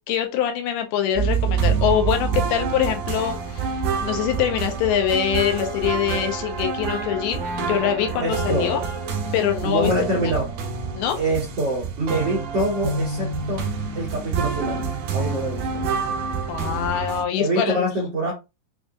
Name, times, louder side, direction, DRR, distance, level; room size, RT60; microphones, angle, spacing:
voice 1, 0.1-8.8 9.3-9.9 11.0-11.2 16.5-17.8, left 9 dB, 80° left, 2.5 m, -24 dB
sound 1, 1.2-17.2, right 5 dB, 80° right, 1.8 m, -27 dB
voice 2, 8.2-8.8 9.6-10.6 11.2-13.7 13.9-14.8 15.1-15.8 17.4-18.3, right 1 dB, 65° right, 1.6 m, -25 dB
6.1 x 2.3 x 2.4 m
omnidirectional pair, 4.6 m